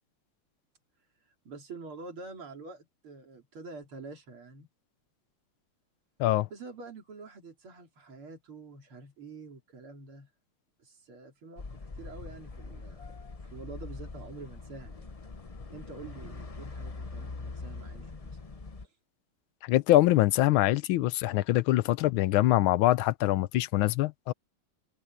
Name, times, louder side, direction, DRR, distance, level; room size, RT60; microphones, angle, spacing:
voice 1, 1.5-4.7 6.5-10.3 10.8-15.2 15.7-18.3, right 3 dB, 80° right, 4.2 m, -47 dB
sound 1, 11.6-18.8, left 3 dB, 60° left, 0.3 m, -43 dB
voice 2, 19.6-24.3, left 15 dB, 75° left, 1.5 m, -24 dB
omnidirectional pair, 2.3 m